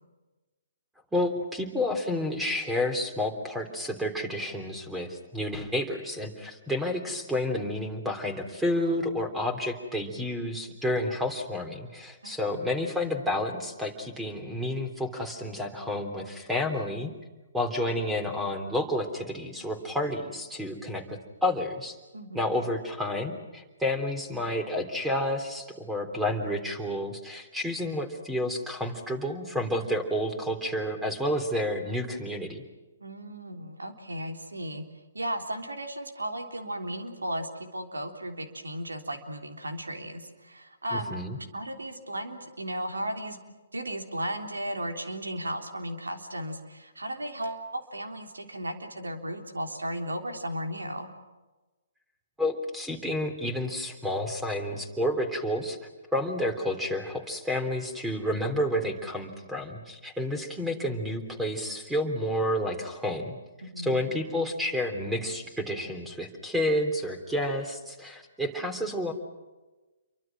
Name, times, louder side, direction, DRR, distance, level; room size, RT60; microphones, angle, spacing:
voice 1, 1.1-17.1 17.5-22.0 22.3-32.6 40.9-41.4 52.4-55.8 56.1-63.3 63.8-69.1, left 1 dB, 5° right, 7 dB, 3.4 m, -30 dB
voice 2, 12.2-12.7 22.1-22.6 33.0-34.8 35.1-41.2 41.5-43.4 43.7-51.1 63.6-64.1, right 1 dB, 90° right, 4 dB, 3.4 m, -35 dB
28.5 x 24.0 x 6.2 m, 1.2 s
figure-of-eight pair, 135°, 0 cm